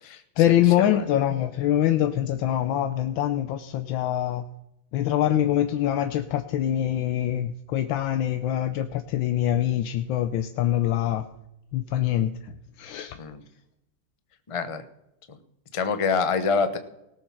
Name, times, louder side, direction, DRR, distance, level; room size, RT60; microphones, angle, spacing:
voice 1, 0.4-4.4 4.9-11.2 11.7-12.5 12.8-13.1, left 12 dB, 85° left, 8 dB, 1.5 m, -24 dB
voice 2, 14.5-14.8 15.3-15.4 15.7-16.8, left 5 dB, 25° left, 9 dB, 0.7 m, -26 dB
18.5 x 7.2 x 5.7 m, 0.86 s
omnidirectional pair, 2.1 m